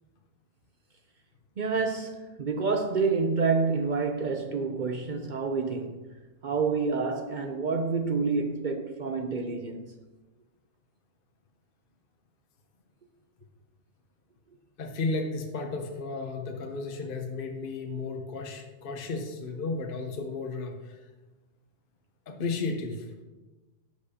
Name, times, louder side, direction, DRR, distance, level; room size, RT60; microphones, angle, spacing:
voice 1, 1.6-6.0 6.4-9.9, right 4 dB, 55° right, 0.5 m, -28 dB
voice 2, 14.8-21.0 22.3-23.1, left 3 dB, 50° left, 0.9 m, -33 dB
10.0 x 6.2 x 2.8 m
omnidirectional pair, 1.3 m